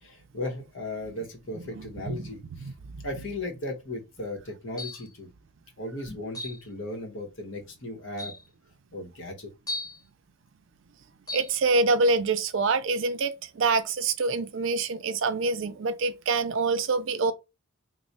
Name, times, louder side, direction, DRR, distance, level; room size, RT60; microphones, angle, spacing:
voice 1, 0.0-2.7 3.0-5.3 5.8-8.3 8.9-9.5, left 2 dB, 60° left, 1.0 m, -36 dB
voice 2, 1.8-2.3 2.6-3.1 11.3-17.3, right 3 dB, 60° right, 0.4 m, -26 dB
sound 1, 4.8-5.1 6.3-6.6 7.6-7.7 8.2-8.5 9.7-10.0 11.3-11.5, left 2 dB, 15° left, 0.5 m, -36 dB
3.1 x 2.0 x 4.0 m
head